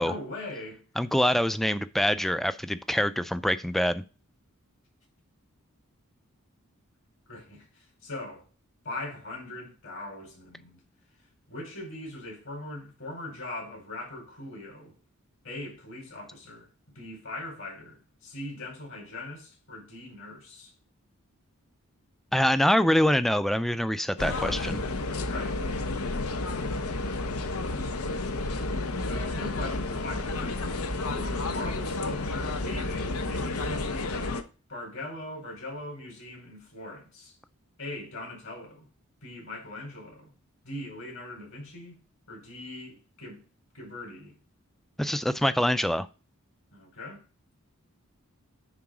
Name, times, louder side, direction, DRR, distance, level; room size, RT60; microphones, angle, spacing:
voice 1, 0.0-0.8 7.3-8.5 8.8-10.8 11.5-14.9 15.4-16.7 16.9-20.7 25.0-25.6 29.0-30.6 31.0-34.4 34.7-37.3 37.8-38.9 39.2-40.3 40.6-42.0 42.3-43.4 43.7-44.3 46.7-47.2, left 2 dB, 65° left, 5.2 m, -40 dB
voice 2, 1.0-4.0 22.3-24.8 45.0-46.1, equal, ahead, 0.3 m, -25 dB
sound 1, 24.2-34.4, left 2 dB, 90° left, 0.8 m, -31 dB
9.7 x 4.0 x 4.8 m
head